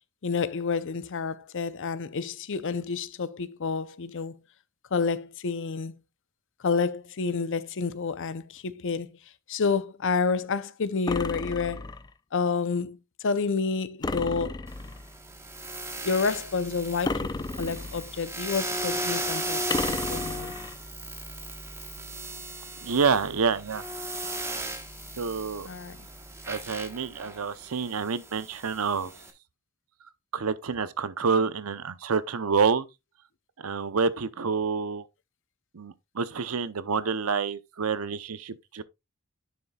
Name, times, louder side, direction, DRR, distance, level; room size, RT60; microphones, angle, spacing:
voice 1, 0.2-4.4 4.9-6.0 6.6-9.1 9.5-11.9 12.3-14.6 16.0-20.5 25.7-26.0, left 5 dB, 60° left, 0.6 m, -29 dB
sound 1, 11.1-12.1 14.0-15.1 17.0-18.2 19.7-20.8, left 3 dB, 20° left, 0.4 m, -33 dB
sound 2, 14.7-29.3, right 1 dB, 10° right, 1.2 m, -36 dB
voice 2, 22.8-23.8 25.2-25.7 26.5-29.1 30.3-32.9 33.6-35.0 35.7-38.8, right 5 dB, 70° right, 0.7 m, -28 dB
10.0 x 6.7 x 2.3 m
head